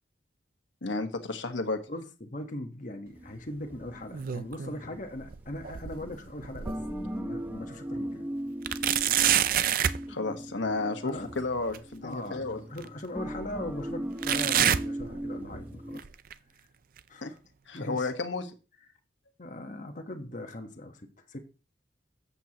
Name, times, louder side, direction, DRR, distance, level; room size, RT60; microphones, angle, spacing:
voice 1, 0.8-1.8 10.1-12.6 17.2-17.3 17.7-18.5, left 3 dB, 85° left, 1.4 m, -32 dB
voice 2, 1.9-8.2 10.8-11.3 12.0-16.0 17.1-17.4 17.7-18.1 19.4-21.4, left 1 dB, 45° left, 1.3 m, -40 dB
sound 1, 3.1-16.0, right 1 dB, 10° right, 0.9 m, -39 dB
sound 2, 3.9-4.8 5.2-7.1 7.6-7.7 8.6-10.0 11.7-11.8 12.8-12.9 14.2-15.6 16.0-16.3 17.0-17.1 18.0-18.1, right 10 dB, 50° right, 0.5 m, -28 dB
13.5 x 8.1 x 2.9 m
head